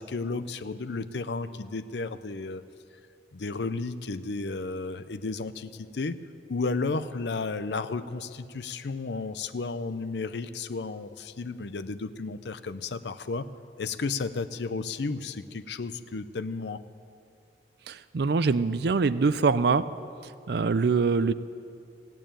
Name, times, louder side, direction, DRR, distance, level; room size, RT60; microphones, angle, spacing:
voice 1, 0.0-2.6 3.3-6.2 6.5-13.5 13.8-16.8, left 3 dB, 70° left, 13 dB, 0.6 m, -33 dB
voice 2, 17.9-19.8 20.5-21.3, right 4 dB, 60° right, 15 dB, 0.4 m, -24 dB
16.0 x 9.1 x 8.8 m, 2.5 s
head